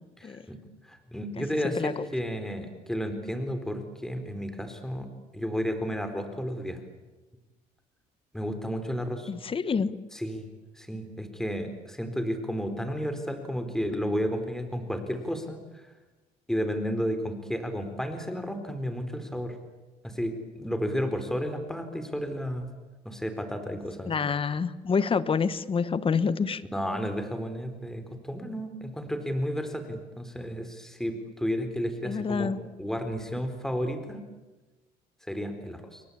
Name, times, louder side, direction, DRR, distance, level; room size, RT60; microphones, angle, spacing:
voice 1, 0.2-0.6 0.9-6.8 8.3-9.3 10.1-10.5 10.8-15.8 16.5-19.6 20.0-22.7 23.0-24.1 26.7-32.5 32.8-34.2 35.3-36.0, equal, 5° left, 8 dB, 4.3 m, -32 dB
voice 2, 1.6-2.1 9.3-10.0 24.1-26.6 32.0-32.6, left 5 dB, 30° left, 15 dB, 1.4 m, -27 dB
29.5 x 23.0 x 8.8 m, 1.2 s
cardioid pair, 110°, 17 cm